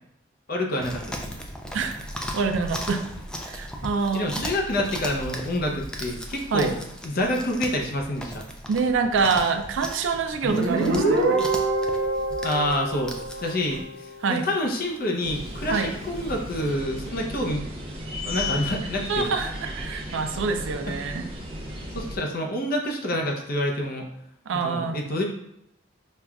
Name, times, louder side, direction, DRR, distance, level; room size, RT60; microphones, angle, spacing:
voice 1, 0.5-1.3 4.1-6.8 7.0-8.5 10.4-10.6 12.4-13.2 13.4-17.7 18.2-19.4 21.9-24.1 24.6-25.3, left 1 dB, 50° left, 2 dB, 0.6 m, -27 dB
Chewing mastication, 0.8-13.8, equal, 5° left, 0.3 m, -37 dB
voice 2, 2.3-3.0 3.4-4.3 6.5-6.8 8.7-11.5 14.2-14.5 15.7-15.9 19.1-21.3 24.5-25.0, right 5 dB, 70° right, 6 dB, 0.4 m, -26 dB
Guitar, 10.5-13.9, right 2 dB, 85° right, 1.1 m, -25 dB
sound 1, 15.2-22.2, left 1 dB, 30° right, 0.6 m, -34 dB
5.3 x 2.3 x 2.3 m, 0.80 s
head